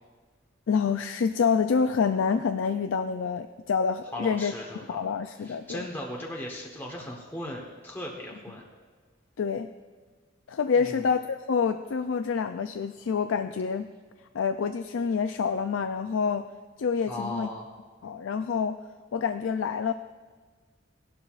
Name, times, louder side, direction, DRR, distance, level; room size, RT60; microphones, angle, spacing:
voice 1, 0.7-4.5 4.9-5.9 9.4-9.7 10.5-13.9 14.3-16.5 16.8-17.5 18.0-18.8 19.1-19.9, left 6 dB, 80° left, 8 dB, 0.4 m, -27 dB
voice 2, 4.1-5.0 5.4-8.6 10.8-11.1 17.1-17.7, left 1 dB, 10° left, -2 dB, 1.1 m, -37 dB
17.0 x 11.5 x 2.5 m, 1.4 s
head